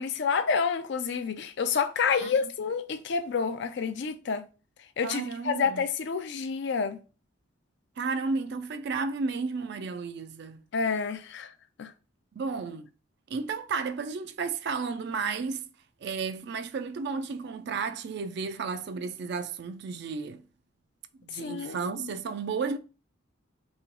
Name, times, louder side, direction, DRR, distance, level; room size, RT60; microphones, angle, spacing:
voice 1, 0.0-4.4 5.0-7.0 10.7-11.5 11.8-11.9 21.4-22.1, left 5 dB, 60° left, 0.4 m, -29 dB
voice 2, 5.0-5.8 8.0-10.6 12.4-12.9 13.3-15.6 16.0-20.4 21.2-22.8, right 4 dB, 55° right, 0.4 m, -33 dB
3.1 x 2.9 x 3.8 m
head